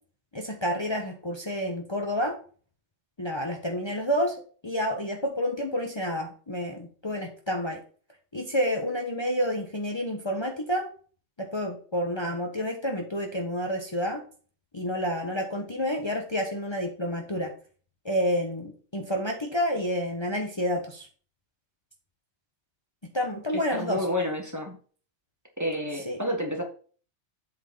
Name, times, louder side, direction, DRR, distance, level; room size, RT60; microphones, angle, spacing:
voice 1, 0.3-2.4 3.2-4.3 4.6-7.8 8.3-10.9 11.4-14.2 14.7-17.5 18.0-21.1 23.1-24.0 26.1-26.2, equal, 25° left, 2 dB, 1.1 m, -29 dB
voice 2, 23.5-24.8 25.6-26.6, left 1 dB, 15° right, 1 dB, 1.5 m, -30 dB
8.1 x 4.6 x 5.5 m, 0.41 s
omnidirectional pair, 1.2 m